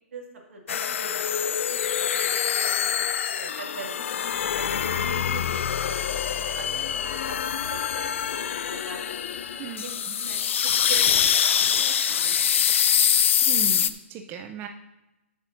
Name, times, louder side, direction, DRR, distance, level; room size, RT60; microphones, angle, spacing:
voice 1, 0.5-2.3 2.6-3.0 3.4-9.0 9.8-12.7, right 3 dB, 75° right, 1 dB, 2.1 m, -42 dB
sound 1, 0.7-13.9, left 8 dB, 65° left, 0.5 m, -25 dB
voice 2, 13.4-14.7, right 8 dB, 25° right, 5 dB, 0.5 m, -36 dB
13.5 x 7.1 x 2.6 m, 0.96 s
hypercardioid pair, 135°, 7 cm